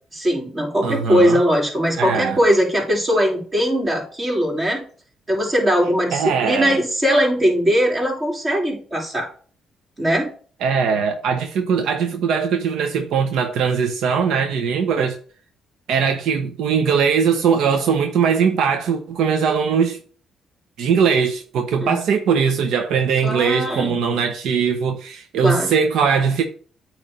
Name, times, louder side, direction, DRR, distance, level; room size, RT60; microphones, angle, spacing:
voice 1, 0.1-4.8 5.3-9.3 10.0-10.3 21.8-22.0 23.2-23.9 25.4-25.7, equal, 30° right, 3.3 m, -20 dB
voice 2, 0.8-1.4 2.0-2.4 6.1-6.8 10.6-15.2 15.9-20.0 20.8-26.4, right 6 dB, 80° right, 0.8 m, -20 dB
8.8 x 3.2 x 5.1 m
cardioid pair, 90°, 0 cm